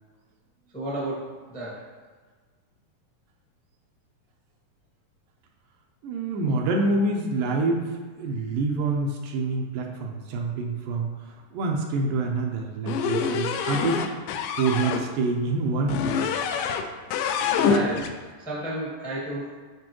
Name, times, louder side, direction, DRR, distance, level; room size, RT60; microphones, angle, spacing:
voice 1, 0.7-1.9 17.6-19.6, right 1 dB, 10° left, -7 dB, 0.5 m, -33 dB
voice 2, 6.0-14.0 14.3-16.6, right 3 dB, 80° right, 0 dB, 2.2 m, -27 dB
sound 1, 12.9-15.0 15.9-16.9 17.1-18.1, left 6 dB, 80° left, 2.0 m, -26 dB
8.4 x 5.5 x 3.1 m, 1.4 s
omnidirectional pair, 4.1 m